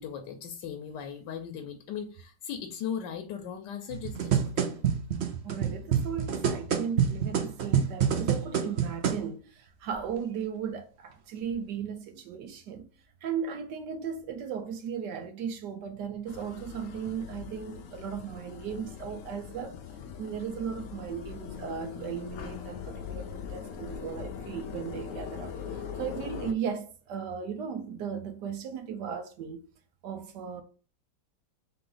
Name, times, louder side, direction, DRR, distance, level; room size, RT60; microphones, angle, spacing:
voice 1, 0.0-4.8, left 8 dB, 85° left, 1.3 m, -38 dB
sound 1, 3.9-9.2 9.9-10.0, right 8 dB, 60° right, 0.6 m, -27 dB
voice 2, 5.4-12.9 13.2-19.8 20.2-29.6 30.0-30.6, right 7 dB, 75° right, 1.3 m, -36 dB
sound 2, 16.3-26.5, left 7 dB, 65° left, 0.8 m, -41 dB
3.8 x 3.4 x 3.8 m
omnidirectional pair, 1.9 m